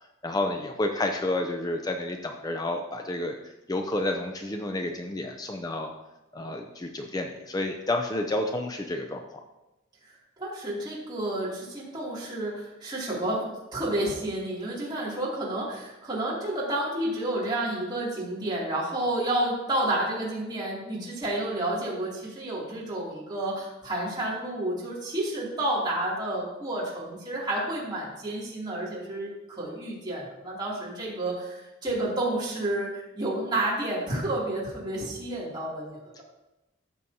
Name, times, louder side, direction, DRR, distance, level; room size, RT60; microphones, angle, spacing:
voice 1, 0.2-3.4 3.7-5.9 6.3-9.4, left 1 dB, 20° left, 3 dB, 0.5 m, -30 dB
voice 2, 10.4-36.2, right 1 dB, 20° right, -7 dB, 2.7 m, -30 dB
14.0 x 6.2 x 2.8 m, 0.98 s
head